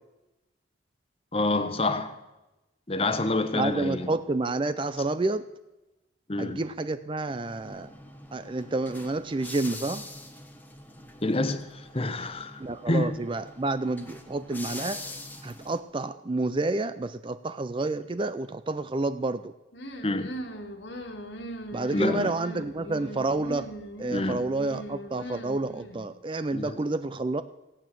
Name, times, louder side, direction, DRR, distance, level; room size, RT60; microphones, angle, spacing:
voice 1, 1.3-2.2 2.9-4.1 6.3-6.6 11.2-12.6 12.9-13.2 20.0-20.3 21.9-22.3 24.1-24.4 26.5-26.8, left 2 dB, 30° left, 1.0 m, -27 dB
voice 2, 3.5-5.5 6.4-7.9 8.3-10.0 12.6-15.0 15.4-19.5 21.7-23.7 24.0-27.4, right 2 dB, 25° right, 0.4 m, -29 dB
sound 1, 7.4-15.8, left 2 dB, 10° left, 1.2 m, -44 dB
sound 2, 19.7-26.1, right 1 dB, 65° left, 1.7 m, -40 dB
16.5 x 9.0 x 7.6 m
head